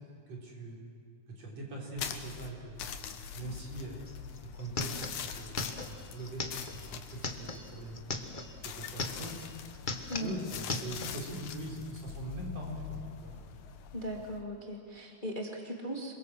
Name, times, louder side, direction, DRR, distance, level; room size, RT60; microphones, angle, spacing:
voice 1, 0.1-0.8 1.3-2.8 3.4-4.9 5.3-8.0 8.6-9.4 10.2-13.4, right 1 dB, 60° right, -1 dB, 5.5 m, -42 dB
sound 1, 2.0-14.4, left 7 dB, 80° left, 2.7 m, -44 dB
sound 2, 4.1-4.2 4.4-8.5 8.9-9.5 9.7-11.1, left 3 dB, 45° left, 0.6 m, -38 dB
voice 2, 13.9-16.2, equal, 20° left, 1 dB, 1.9 m, -38 dB
27.5 x 22.5 x 7.7 m, 2.4 s
omnidirectional pair, 3.3 m